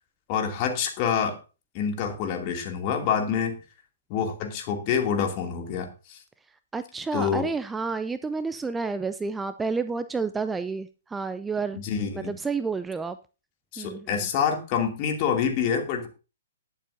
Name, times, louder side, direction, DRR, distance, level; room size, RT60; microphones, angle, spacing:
voice 1, 0.3-1.4 1.7-3.6 4.1-6.2 7.1-7.5 11.7-12.4 13.7-16.1, left 7 dB, 35° left, 3 dB, 2.5 m, -27 dB
voice 2, 6.7-11.8 12.2-13.2 13.8-14.1, right 4 dB, 10° right, 12 dB, 0.4 m, -30 dB
20.0 x 7.2 x 2.7 m, 0.32 s
figure-of-eight pair, 120°, 0 cm